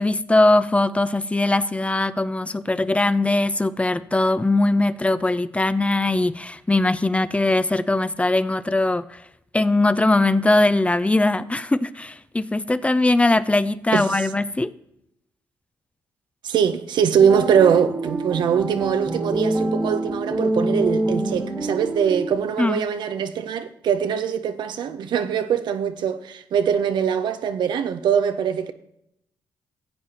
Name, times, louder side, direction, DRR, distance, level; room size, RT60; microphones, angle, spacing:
voice 1, 0.0-9.2 9.5-14.7 22.6-22.8, left 2 dB, 15° left, 0.5 m, -20 dB
voice 2, 16.4-28.7, right 8 dB, 70° right, 0.7 m, -22 dB
sound 1, 17.2-22.4, right 1 dB, 25° right, 1.5 m, -26 dB
15.5 x 8.0 x 2.9 m
supercardioid pair, 55°, 8 cm